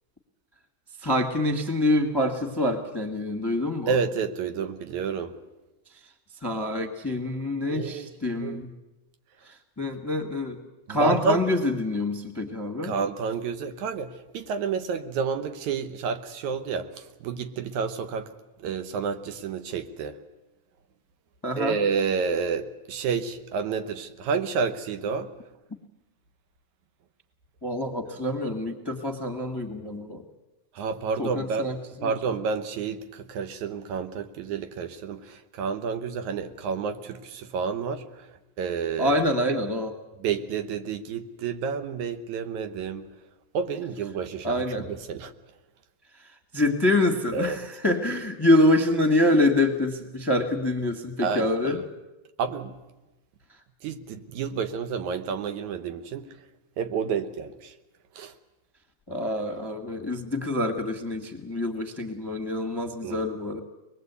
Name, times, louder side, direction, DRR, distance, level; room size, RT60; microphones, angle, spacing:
voice 1, 1.0-3.9 6.4-8.7 9.4-10.6 10.9-12.9 21.4-21.7 27.6-30.2 31.2-32.1 39.0-39.9 44.4-44.9 46.5-51.8 59.1-63.6, left 1 dB, 15° left, 4 dB, 0.8 m, -26 dB
voice 2, 3.9-5.4 7.7-8.6 10.9-11.4 12.8-18.3 18.6-20.2 21.6-25.3 30.7-31.7 32.0-38.3 38.6-39.2 40.2-43.1 43.5-45.3 47.3-47.6 51.2-51.8 52.4-52.8 53.8-56.4 56.8-57.7 58.2-58.3 63.0-63.3, right 5 dB, 80° right, 9 dB, 2.5 m, -30 dB
24.0 x 21.0 x 8.2 m, 1.1 s
omnidirectional pair, 3.4 m